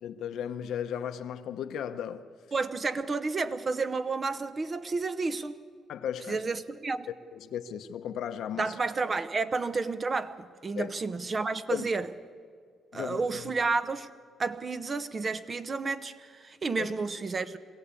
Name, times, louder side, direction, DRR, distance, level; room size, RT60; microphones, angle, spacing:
voice 1, 0.0-2.3 5.9-6.4 7.3-8.8 10.7-10.9 11.7-11.9 12.9-13.2 16.8-16.9, left 9 dB, 75° left, 0.9 m, -35 dB
voice 2, 2.5-5.6 6.3-7.1 8.6-12.1 12.9-14.1 14.4-17.6, right 4 dB, 35° right, 1.0 m, -31 dB
22.5 x 16.5 x 8.4 m
cardioid pair, 90°, 0 cm